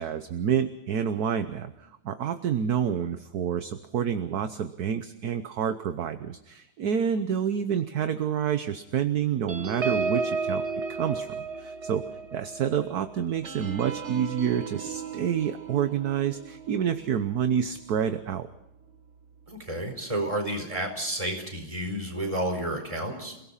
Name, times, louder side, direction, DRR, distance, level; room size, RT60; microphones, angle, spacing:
voice 1, 0.0-10.6 10.9-12.0 12.3-18.5, right 8 dB, 55° right, 10 dB, 1.2 m, -28 dB
sound 1, 9.5-18.4 18.8-19.0 19.3-19.6, right 4 dB, 35° right, 1.4 m, -35 dB
voice 2, 19.5-23.3, right 1 dB, 15° right, 3 dB, 4.6 m, -31 dB
28.0 x 17.5 x 5.7 m, 0.87 s
omnidirectional pair, 2.3 m